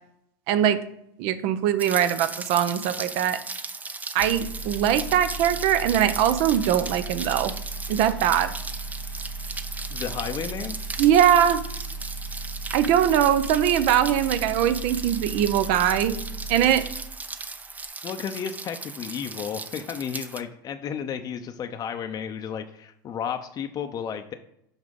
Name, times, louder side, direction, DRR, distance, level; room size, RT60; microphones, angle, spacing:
voice 1, 0.5-0.8 1.2-3.4 4.1-7.5 7.9-8.5 11.0-11.6 12.7-16.2 16.5-16.8, right 10 dB, 60° right, 11 dB, 0.8 m, -21 dB
Rain, 1.8-20.4, right 3 dB, 15° right, 0.6 m, -37 dB
sound 1, 4.2-17.3 17.6-17.9, right 3 dB, 80° left, 0.7 m, -36 dB
voice 2, 9.9-10.8 18.0-24.3, left 8 dB, 35° left, 6 dB, 0.7 m, -33 dB
6.3 x 5.1 x 5.3 m, 0.75 s
hypercardioid pair, 95°, 11 cm